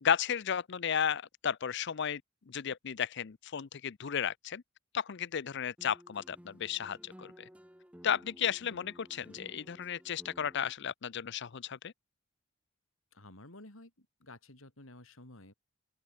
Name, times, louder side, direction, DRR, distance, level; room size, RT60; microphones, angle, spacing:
voice 1, 0.0-2.2 2.5-4.6 4.9-7.4 8.0-11.9, left 8 dB, 60° left, 0.6 m, -34 dB
sound 1, 5.8-10.7, equal, 5° right, 6.2 m, -55 dB
voice 2, 13.1-15.5, left 1 dB, 80° left, 4.6 m, -53 dB
open air
head